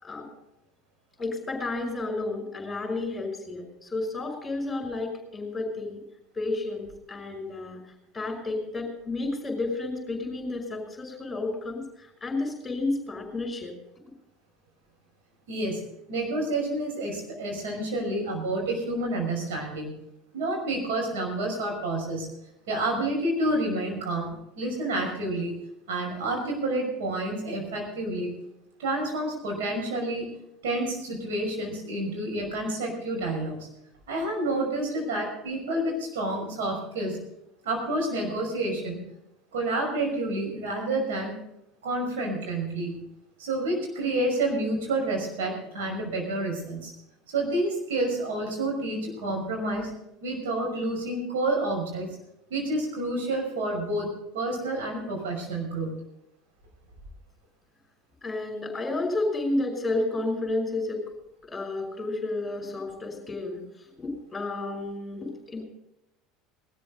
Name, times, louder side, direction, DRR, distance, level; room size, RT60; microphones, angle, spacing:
voice 1, 1.2-6.0 6.3-13.7 58.2-61.1 61.4-63.6 64.0-65.6, left 2 dB, 15° left, 3 dB, 5.5 m, -31 dB
voice 2, 15.5-15.8 16.1-19.9 20.3-22.3 22.7-25.6 25.9-28.3 28.8-30.3 30.6-33.6 34.1-37.2 37.6-39.0 39.5-41.4 41.8-43.0 43.4-46.9 47.3-49.9 50.2-52.1 52.5-56.0, right 2 dB, 65° right, 0 dB, 5.8 m, -29 dB
19.5 x 13.5 x 3.9 m, 0.84 s
figure-of-eight pair, 70°, 0 cm